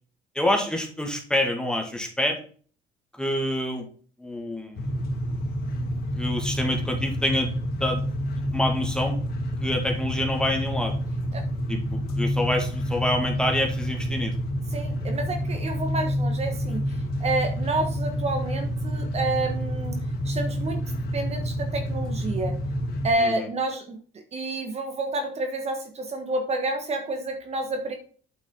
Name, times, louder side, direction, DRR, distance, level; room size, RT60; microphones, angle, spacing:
voice 1, 0.3-2.4 3.1-3.8 4.2-5.0 6.2-8.1 8.5-9.2 9.6-11.0 11.7-14.3 23.2-23.5, left 1 dB, 5° left, 2 dB, 2.0 m, -27 dB
sound 1, 4.7-23.1, equal, 65° left, 2.0 m, -28 dB
voice 2, 14.7-16.8 17.2-20.0 20.2-20.8 21.1-22.6 23.0-24.0 24.3-28.0, right 2 dB, 40° right, 5 dB, 1.4 m, -29 dB
8.3 x 5.5 x 3.9 m, 0.42 s
cardioid pair, 110°, 17 cm